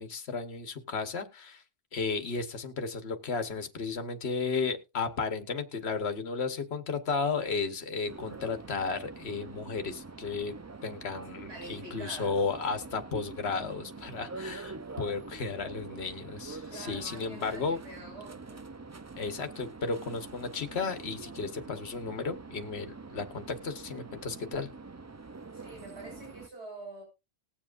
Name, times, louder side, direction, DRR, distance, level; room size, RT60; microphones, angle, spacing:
voice 1, 0.0-1.6 1.9-10.5 10.8-17.8 19.1-24.7, left 4 dB, 80° left, 1.4 m, -34 dB
sound 1, 8.1-26.5, right 3 dB, 25° right, 0.3 m, -45 dB
voice 2, 11.5-12.4 16.7-18.6 25.5-27.0, right 2 dB, 80° right, 6.6 m, -46 dB
19.5 x 7.4 x 2.5 m
omnidirectional pair, 1.1 m